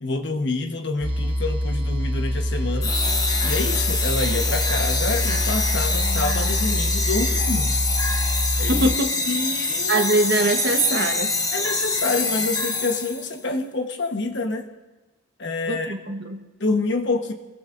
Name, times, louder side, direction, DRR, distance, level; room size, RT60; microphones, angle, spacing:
voice 1, 0.0-2.9 3.4-7.8 8.6-8.9 9.3-10.1 11.5-14.7 15.4-16.0 16.6-17.3, left 3 dB, 60° left, 5 dB, 1.3 m, -27 dB
sound 1, 1.0-9.0, equal, 25° right, 1.1 m, -25 dB
sound 2, 2.8-13.3, left 3 dB, 20° left, 1.1 m, -25 dB
voice 2, 8.7-9.1 9.9-11.3 15.7-16.4, right 2 dB, 55° right, 5 dB, 1.3 m, -22 dB
26.5 x 20.5 x 2.6 m, 1.2 s
head